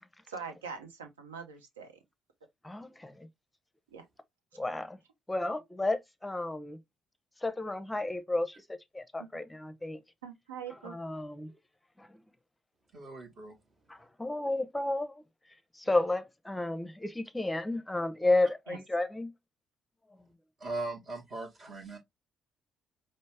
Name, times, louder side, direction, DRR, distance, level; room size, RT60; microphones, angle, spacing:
voice 1, 0.3-1.9 3.9-4.0 10.2-11.0 18.7-18.8, right 6 dB, 75° right, 0.7 m, -43 dB
voice 2, 2.6-3.3 4.5-5.0 5.3-6.8 7.4-10.0 10.7-11.5 12.0-12.2 13.9-15.2 15.7-19.3, left 2 dB, 10° left, 0.6 m, -32 dB
voice 3, 12.9-13.5 20.6-22.0, right 2 dB, 50° right, 1.1 m, -39 dB
5.2 x 2.0 x 3.2 m
figure-of-eight pair, 45°, 0 cm